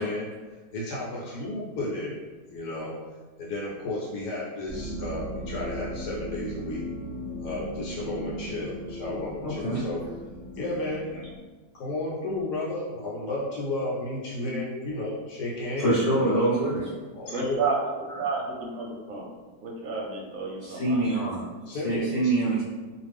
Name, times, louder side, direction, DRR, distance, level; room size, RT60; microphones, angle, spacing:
voice 1, 0.0-2.2 2.5-3.0 3.4-6.8 7.4-10.0 10.6-11.3 11.7-16.5 17.1-17.6 21.7-22.1, left 2 dB, 75° left, -5 dB, 1.2 m, -33 dB
sound 1, 4.7-11.4, equal, 30° right, 0.7 m, -37 dB
voice 2, 9.4-9.8 15.8-16.9 20.6-22.6, right 2 dB, 55° left, -9 dB, 0.8 m, -25 dB
voice 3, 17.3-19.3 19.6-21.0, right 4 dB, 65° right, -2 dB, 0.9 m, -31 dB
2.5 x 2.4 x 3.3 m, 1.3 s
omnidirectional pair, 1.8 m